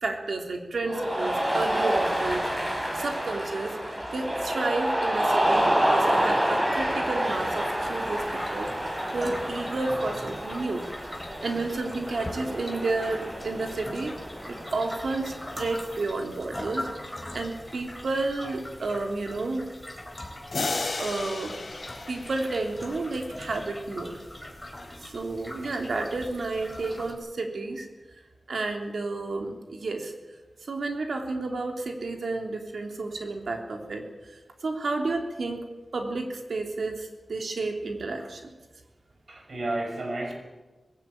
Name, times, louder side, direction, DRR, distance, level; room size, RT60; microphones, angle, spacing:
voice 1, 0.0-3.8 4.1-10.8 11.4-14.2 14.5-19.7 21.0-21.6 22.1-24.2 25.0-27.9 28.5-30.1 30.6-35.6 35.9-38.5, right 3 dB, 80° right, 3 dB, 3.2 m, -31 dB
Cheering, 0.8-15.7, right 1 dB, 20° right, 5.7 m, -28 dB
sound 1, 7.3-27.1, left 1 dB, 10° left, 4.2 m, -41 dB
sound 2, 20.5-23.2, left 3 dB, 60° left, 4.4 m, -33 dB
voice 2, 39.3-40.3, right 2 dB, 55° right, 3 dB, 5.8 m, -32 dB
19.5 x 16.0 x 8.9 m, 1.2 s
wide cardioid pair, 100°, 0 cm